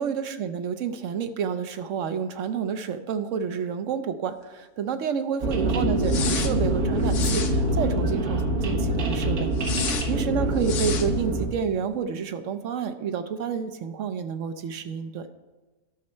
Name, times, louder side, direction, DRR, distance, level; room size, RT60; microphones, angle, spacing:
voice 1, 0.0-15.3, right 7 dB, 70° right, 9 dB, 0.9 m, -29 dB
sound 1, 5.4-11.5, right 1 dB, 85° right, 1.8 m, -25 dB
sound 2, 6.0-6.5 7.1-7.5 9.6-10.1 10.6-11.1, left 7 dB, 65° left, 1.1 m, -31 dB
12.0 x 6.4 x 4.3 m, 1.2 s
omnidirectional pair, 1.5 m